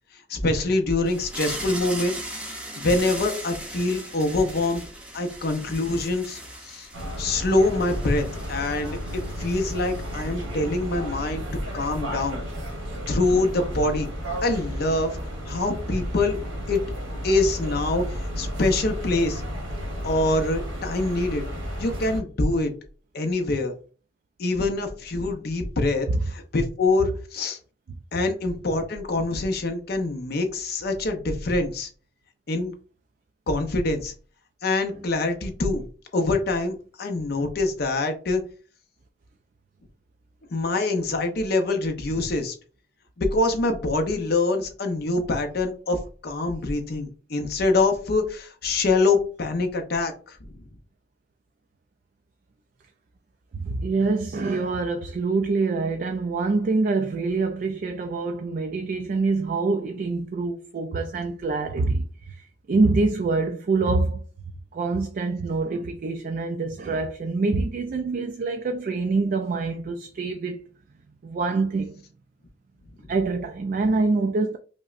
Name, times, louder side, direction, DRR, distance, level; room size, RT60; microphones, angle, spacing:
voice 1, 0.3-2.5 2.8-4.8 5.1-6.9 7.2-11.4 11.7-12.4 13.1-14.1 14.4-15.2 15.5-16.4 16.7-16.8 17.2-19.4 20.0-21.4 21.8-22.7 23.1-23.7 24.4-27.6 28.1-31.9 32.5-32.7 33.5-34.1 34.6-35.8 36.1-38.4 40.5-42.5 43.2-50.4, left 2 dB, 55° left, 0.6 m, -25 dB
sound 1, 1.1-10.5, right 1 dB, 5° right, 0.6 m, -38 dB
sound 2, 6.9-22.2, equal, 90° right, 1.2 m, -33 dB
voice 2, 53.5-64.2 64.7-70.6 71.2-72.0 73.1-74.6, right 3 dB, 45° right, 0.3 m, -25 dB
5.1 x 2.1 x 2.4 m
head